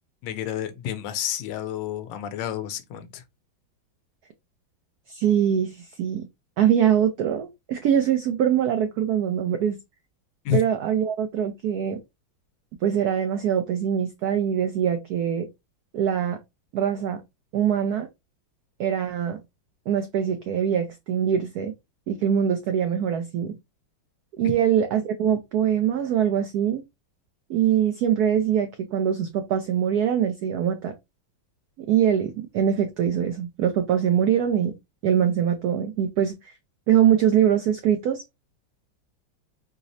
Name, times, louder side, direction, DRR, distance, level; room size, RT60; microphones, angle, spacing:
voice 1, 0.2-3.2 10.4-10.6, left 9 dB, 75° left, 1.2 m, -29 dB
voice 2, 5.1-6.3 6.6-9.8 10.5-12.0 12.8-15.5 15.9-16.4 16.7-17.2 17.5-18.1 18.8-19.4 19.9-21.7 22.1-23.6 24.4-26.8 27.5-30.9 31.8-34.7 35.0-36.5 36.9-38.2, right 9 dB, 80° right, 0.8 m, -23 dB
4.7 x 2.0 x 2.6 m
omnidirectional pair, 2.2 m